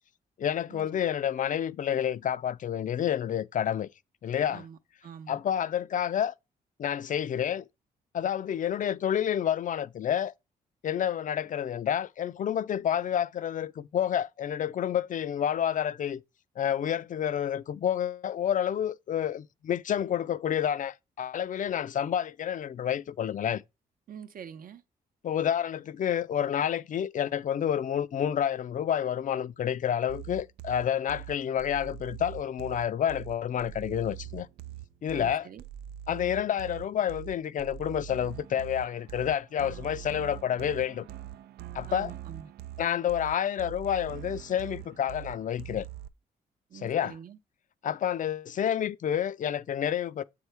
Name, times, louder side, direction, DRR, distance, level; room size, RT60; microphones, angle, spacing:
voice 1, 0.4-3.9 4.2-4.7 5.3-6.3 6.8-7.6 8.1-10.3 10.8-16.2 16.6-23.6 25.2-34.5 35.0-35.5 36.1-41.1 41.7-42.1 42.8-45.8 46.7-47.2 47.8-50.2, left 9 dB, 55° left, 0.4 m, -29 dB
voice 2, 4.5-5.4 24.1-24.8 35.1-35.6 41.9-42.5 46.7-47.4, right 8 dB, 60° right, 0.8 m, -45 dB
sound 1, 30.1-46.1, right 12 dB, 85° right, 0.4 m, -43 dB
7.3 x 4.6 x 3.4 m
cardioid pair, 75°, 16 cm